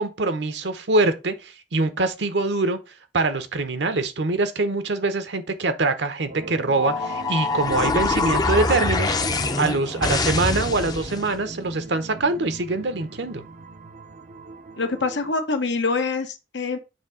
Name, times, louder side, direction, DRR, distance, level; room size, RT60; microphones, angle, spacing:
voice 1, 0.0-2.8 3.1-9.2 9.6-13.4, right 3 dB, 75° right, 0.9 m, -24 dB
sound 1, 6.3-15.3, right 2 dB, 45° right, 0.6 m, -39 dB
sound 2, 6.8-11.3, left 3 dB, 20° left, 0.5 m, -24 dB
voice 2, 14.8-16.8, left 3 dB, 85° left, 1.0 m, -25 dB
7.2 x 2.8 x 4.9 m
head